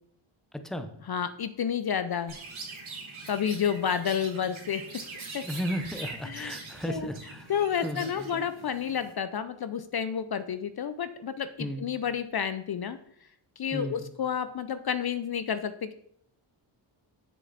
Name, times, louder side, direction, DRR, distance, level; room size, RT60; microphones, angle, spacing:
voice 1, 0.5-0.9 5.4-7.5 7.8-8.4 11.6-11.9 13.7-14.0, equal, ahead, 8 dB, 0.7 m, -35 dB
voice 2, 1.1-2.4 3.3-4.8 5.3-5.4 6.3-6.6 6.9-7.1 7.5-13.0 13.6-15.9, left 8 dB, 50° left, 12 dB, 0.5 m, -30 dB
Chirp tweet, 2.3-9.1, right 3 dB, 80° right, 1.9 m, -43 dB
7.5 x 6.6 x 4.1 m, 0.69 s
wide cardioid pair, 100°, 48 cm